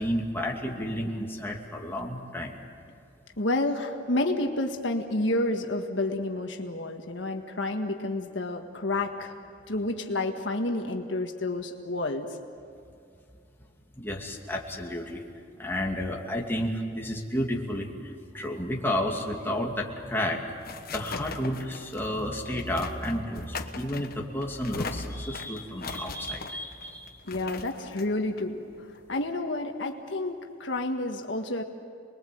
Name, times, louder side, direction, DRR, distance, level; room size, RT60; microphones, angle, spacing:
voice 1, 0.0-2.6 14.0-15.3 15.6-17.9 18.3-20.4 20.9-27.2, left 1 dB, 10° left, -1 dB, 2.6 m, -31 dB
voice 2, 3.4-9.3 9.7-12.3 27.3-28.7 29.1-31.6, left 2 dB, 70° left, 3 dB, 1.7 m, -30 dB
sound 1, 20.0-29.3, left 4 dB, 55° left, 1.3 m, -41 dB
29.0 x 21.5 x 7.9 m, 2.4 s
head